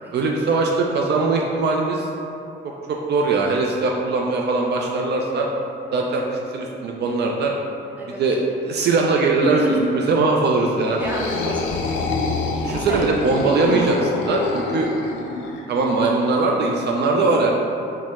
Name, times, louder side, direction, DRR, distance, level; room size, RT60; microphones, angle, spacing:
voice 1, 0.1-2.1 2.6-5.5 5.9-7.5 8.1-9.6 9.9-11.0 12.6-14.9 15.7-17.5, right 3 dB, 60° right, 0 dB, 0.4 m, -21 dB
voice 2, 9.4-10.0 11.0-11.9 12.5-13.2 13.6-13.8, equal, 10° right, -4 dB, 0.6 m, -27 dB
sound 1, 10.8-15.6, left 3 dB, 75° left, 0.5 m, -26 dB
4.2 x 2.1 x 3.5 m, 2.7 s
cardioid pair, 90°, 20 cm